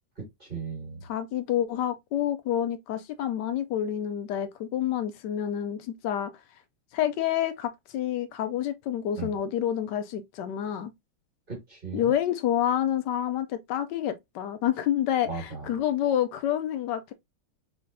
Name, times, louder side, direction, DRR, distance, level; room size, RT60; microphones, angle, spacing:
voice 1, 0.2-1.0 9.2-9.3 11.5-12.1 15.3-15.7, right 5 dB, 30° right, 1.5 m, -37 dB
voice 2, 1.0-6.3 6.9-10.9 11.9-17.1, left 10 dB, 75° left, 1.0 m, -28 dB
4.7 x 3.5 x 2.5 m
omnidirectional pair, 2.2 m